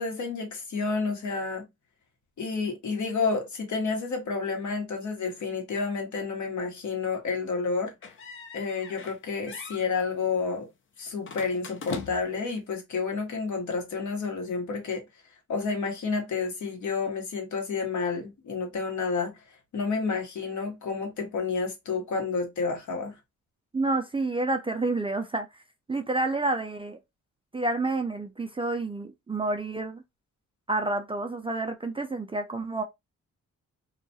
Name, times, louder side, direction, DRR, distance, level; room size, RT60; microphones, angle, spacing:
voice 1, 0.0-1.7 2.4-7.9 8.5-10.7 11.0-15.0 15.5-19.3 19.7-23.1, left 4 dB, 65° left, 1.0 m, -30 dB
sound 1, 8.0-9.2 9.5-9.9 11.2-12.4, left 5 dB, 40° left, 0.5 m, -40 dB
voice 2, 23.7-25.5 25.9-27.0 27.5-30.0 30.7-32.8, right 2 dB, 15° right, 0.4 m, -29 dB
2.3 x 2.1 x 2.6 m
cardioid pair, 75°, 31 cm